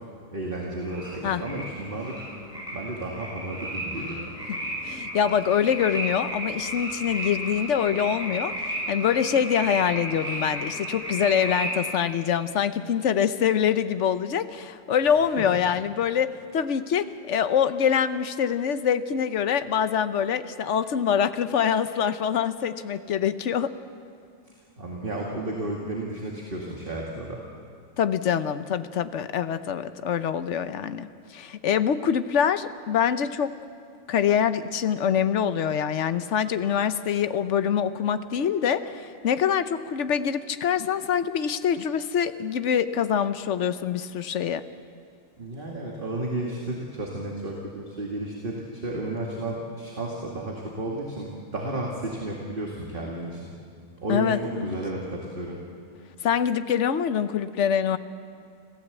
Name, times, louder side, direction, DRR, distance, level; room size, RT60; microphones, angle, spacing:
voice 1, 0.3-2.2 2.7-4.3 15.1-15.2 24.8-27.4 45.4-53.5 54.0-55.6, right 1 dB, 35° right, -2 dB, 2.4 m, -32 dB
sound 1, 0.8-11.8, equal, 5° right, 7.6 m, -34 dB
voice 2, 4.8-23.7 28.0-33.5 34.1-44.6 54.1-54.8 56.2-58.0, left 8 dB, 60° left, 12 dB, 1.1 m, -25 dB
26.0 x 15.5 x 8.2 m, 2.3 s
omnidirectional pair, 1.5 m